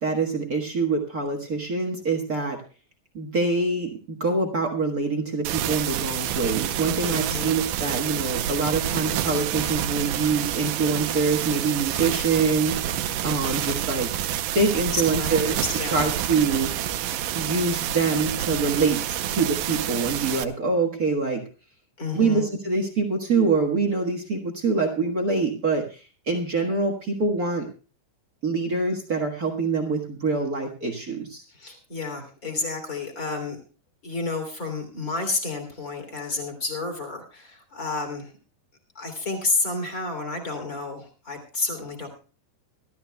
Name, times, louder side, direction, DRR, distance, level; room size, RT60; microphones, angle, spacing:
voice 1, 0.0-2.6 3.1-14.1 14.5-15.6 15.9-16.7 17.3-21.4 22.1-27.7 28.4-31.4, right 4 dB, 55° right, 5 dB, 1.0 m, -25 dB
sound 1, 5.4-20.4, right 11 dB, 75° right, 2.1 m, -28 dB
voice 2, 7.1-7.5 14.9-16.0 22.0-22.4 31.5-33.6 34.0-38.3 38.9-42.1, left 3 dB, 25° left, 4 dB, 3.1 m, -30 dB
24.5 x 13.0 x 2.3 m, 0.35 s
omnidirectional pair, 4.1 m